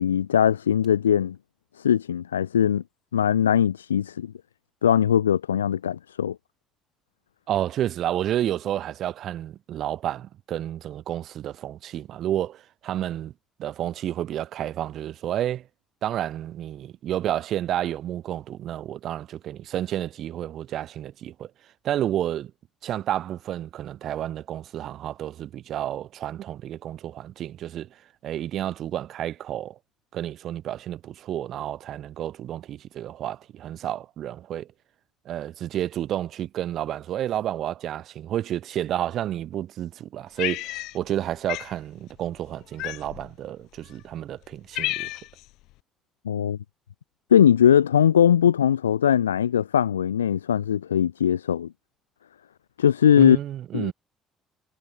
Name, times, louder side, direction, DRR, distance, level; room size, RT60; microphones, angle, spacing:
voice 1, 0.0-1.4 1.8-2.8 3.1-4.3 4.8-6.4 46.3-46.6 47.3-51.7 52.8-53.4 53.7-53.9, left 9 dB, 80° left, 2.0 m, -20 dB
voice 2, 7.5-13.3 13.6-15.7 16.0-21.5 21.8-22.5 22.8-29.8 30.1-34.7 35.2-45.1 53.2-53.9, right 11 dB, 55° right, 4.1 m, -30 dB
Cat, 40.4-41.2 41.5-41.7 42.8-43.3 44.0-44.1 44.4-45.4, left 19 dB, 65° left, 5.1 m, -31 dB
figure-of-eight pair, 50°, 0 cm